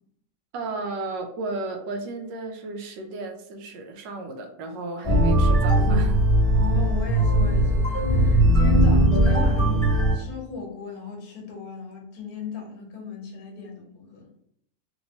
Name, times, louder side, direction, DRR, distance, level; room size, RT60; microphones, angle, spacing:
voice 1, 0.5-6.2, right 3 dB, 80° right, 4 dB, 1.3 m, -34 dB
sound 1, 5.0-10.1, right 1 dB, 20° left, 0.9 m, -19 dB
voice 2, 6.5-14.3, left 4 dB, 60° left, 1 dB, 1.3 m, -37 dB
3.4 x 2.9 x 2.7 m, 0.71 s
omnidirectional pair, 1.9 m